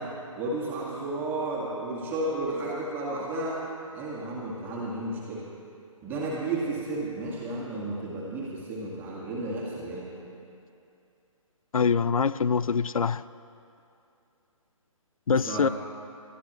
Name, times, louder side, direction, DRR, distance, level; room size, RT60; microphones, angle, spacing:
voice 1, 0.0-5.5 6.0-10.1 15.3-15.7, right 2 dB, 10° right, -6 dB, 1.7 m, -33 dB
voice 2, 11.7-13.2 15.3-15.7, left 5 dB, 75° left, 17 dB, 0.4 m, -24 dB
23.0 x 12.5 x 3.1 m, 2.6 s
figure-of-eight pair, 140°, 18 cm